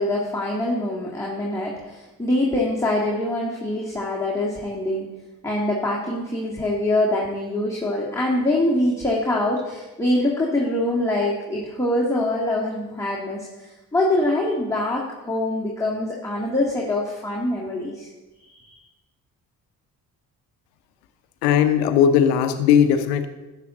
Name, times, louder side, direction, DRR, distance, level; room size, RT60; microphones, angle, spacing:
voice 1, 0.0-5.1 5.4-18.1 18.5-18.8, left 1 dB, 5° left, -4 dB, 2.0 m, -24 dB
voice 2, 21.4-23.3, left 8 dB, 80° left, 10 dB, 0.8 m, -18 dB
13.0 x 8.0 x 3.8 m, 1.1 s
hypercardioid pair, 40°, 47 cm